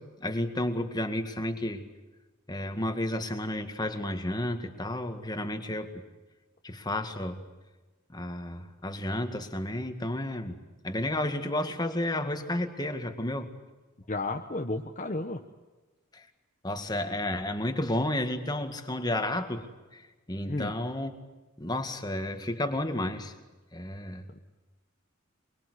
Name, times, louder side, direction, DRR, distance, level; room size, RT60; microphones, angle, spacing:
voice 1, 0.0-1.9 2.5-5.9 6.6-7.4 8.1-10.6 10.8-13.5 16.1-16.3 16.6-19.7 19.9-21.1 21.6-23.3 23.7-24.2, left 1 dB, 20° left, 7 dB, 2.0 m, -32 dB
voice 2, 14.1-15.4 20.5-20.7 24.3-24.4, left 2 dB, 35° left, 4 dB, 1.1 m, -32 dB
24.0 x 24.0 x 8.2 m, 1.2 s
head